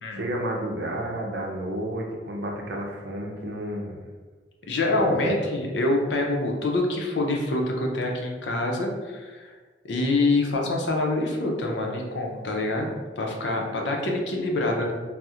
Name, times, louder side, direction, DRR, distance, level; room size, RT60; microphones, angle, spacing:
voice 1, 0.1-4.0 5.1-5.3, right 1 dB, 75° right, 0 dB, 0.6 m, -31 dB
voice 2, 4.7-9.5 9.8-14.9, left 2 dB, 85° left, 1 dB, 0.5 m, -26 dB
4.1 x 2.0 x 2.4 m, 1.4 s
head